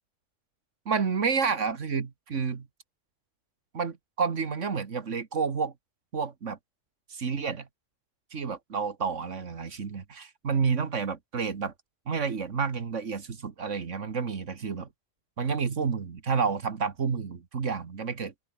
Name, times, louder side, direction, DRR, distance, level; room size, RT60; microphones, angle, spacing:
voice 1, 0.9-2.7 3.7-5.7 6.1-6.6 7.1-7.7 8.3-11.7 12.1-14.9 15.4-18.3, right 5 dB, 70° right, 1.9 m, -30 dB
open air
omnidirectional pair, 1.3 m